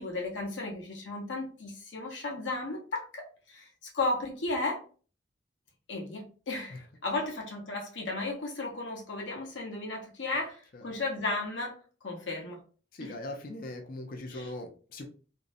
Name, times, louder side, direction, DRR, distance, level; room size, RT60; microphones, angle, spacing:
voice 1, 0.0-4.8 5.9-12.6 13.0-13.1 14.3-14.5, left 2 dB, 75° left, 0 dB, 0.8 m, -35 dB
voice 2, 12.9-15.1, left 1 dB, 50° left, 3 dB, 0.4 m, -40 dB
2.6 x 2.0 x 2.5 m, 0.38 s
head